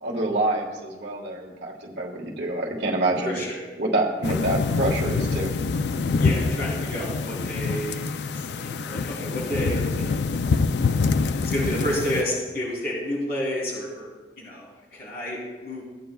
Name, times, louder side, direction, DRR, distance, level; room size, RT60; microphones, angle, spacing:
voice 1, 0.0-3.4 3.8-5.5, right 2 dB, 85° right, -3 dB, 1.5 m, -26 dB
voice 2, 3.2-3.6 6.2-8.1 8.4-10.2 11.4-14.1 14.4-15.8, equal, 60° left, -5 dB, 3.1 m, -30 dB
sound 1, 4.2-12.2, left 4 dB, 80° left, 0.4 m, -25 dB
16.0 x 9.1 x 2.3 m, 1.4 s
head